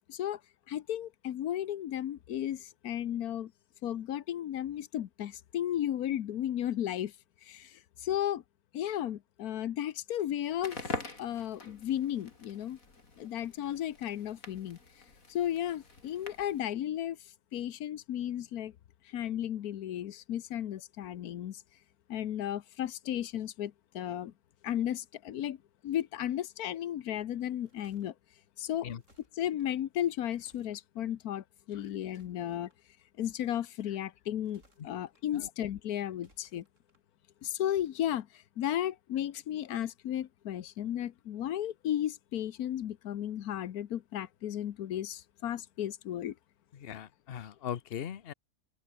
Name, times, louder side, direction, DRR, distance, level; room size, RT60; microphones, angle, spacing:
voice 1, 0.1-0.4 0.7-3.5 3.8-7.1 7.4-8.4 8.7-12.8 13.2-14.8 15.3-18.7 19.0-21.6 22.1-24.3 24.6-25.6 25.8-28.1 28.6-28.9 29.4-32.7 33.2-36.6 37.4-46.3, left 11 dB, 85° left, 1.4 m, -34 dB
Crackle, 10.5-16.7, left 3 dB, 65° left, 4.1 m, -45 dB
sound 1, 27.4-28.1 28.9-29.7 30.3-30.8 31.8-32.8 34.3-35.2 36.1-37.0 37.6-38.1, right 1 dB, 55° right, 8.5 m, -67 dB
voice 2, 46.7-48.3, left 9 dB, 45° left, 1.0 m, -40 dB
open air
omnidirectional pair, 1.5 m